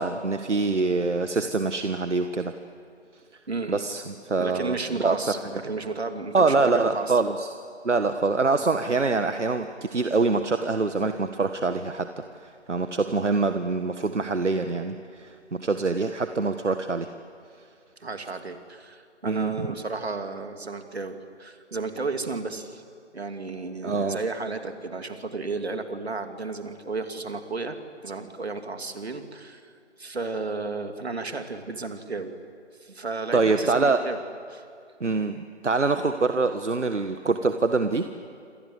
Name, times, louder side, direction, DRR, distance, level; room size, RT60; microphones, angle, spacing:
voice 1, 0.0-2.6 3.7-5.2 6.3-7.5 7.8-17.1 19.3-19.7 23.8-24.2 33.3-34.0 35.0-38.1, right 3 dB, 75° right, 8 dB, 1.6 m, -25 dB
voice 2, 3.5-3.9 4.4-7.2 18.0-22.8 23.1-27.8 28.0-29.7 30.0-32.3 32.8-34.2 34.5-34.6, right 3 dB, 60° right, 6 dB, 2.9 m, -33 dB
28.0 x 26.5 x 8.0 m, 2.3 s
figure-of-eight pair, 165°, 36 cm